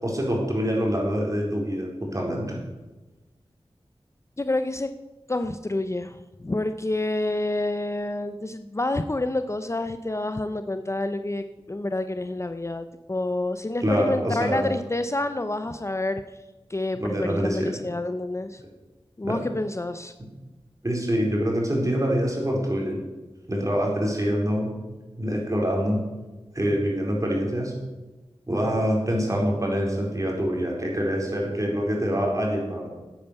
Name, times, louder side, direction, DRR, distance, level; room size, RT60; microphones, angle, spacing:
voice 1, 0.0-2.6 13.8-14.7 16.9-17.7 19.2-19.4 20.8-23.0 23.5-24.7 25.2-26.0 26.5-27.7 28.5-32.9, equal, 30° right, -1 dB, 4.3 m, -25 dB
voice 2, 4.4-4.9 5.3-16.4 16.7-18.6 19.2-20.1, left 2 dB, 25° left, 9 dB, 0.6 m, -28 dB
11.0 x 8.9 x 8.2 m, 1.2 s
wide cardioid pair, 60°, 11 cm